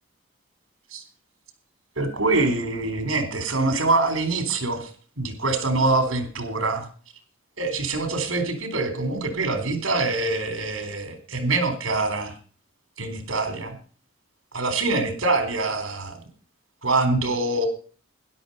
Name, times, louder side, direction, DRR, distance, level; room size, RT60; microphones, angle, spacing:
voice 1, 2.0-4.9 5.2-6.9 7.6-12.3 13.0-13.8 14.5-16.2 16.8-17.7, right 3 dB, 85° right, 8 dB, 3.7 m, -24 dB
13.0 x 11.0 x 5.4 m, 0.41 s
head